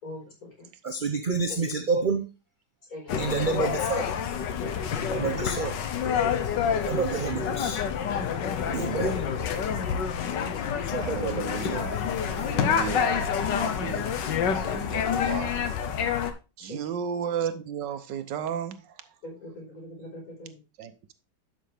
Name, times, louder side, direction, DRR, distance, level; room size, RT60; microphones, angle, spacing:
voice 1, 0.8-2.3 3.2-4.1 5.1-5.8 6.9-7.8 8.7-9.2 9.7-9.8 10.8-11.5, right 4 dB, 55° right, 6 dB, 0.5 m, -28 dB
voice 2, 2.9-3.5 4.4-6.0 7.2-7.6 8.2-9.3 11.2-11.7 12.3-13.2 14.6-15.7 16.6-17.0 19.2-20.6, left 1 dB, 55° left, -1 dB, 5.5 m, -43 dB
sound 1, 3.1-16.3, left 7 dB, 90° left, 1.6 m, -28 dB
voice 3, 11.0-12.0 12.3-13.2 13.8-14.1 14.4-15.5 16.6-19.0 20.8-21.1, right 8 dB, 80° right, 11 dB, 1.5 m, -34 dB
11.5 x 6.2 x 3.4 m, 0.29 s
omnidirectional pair, 1.9 m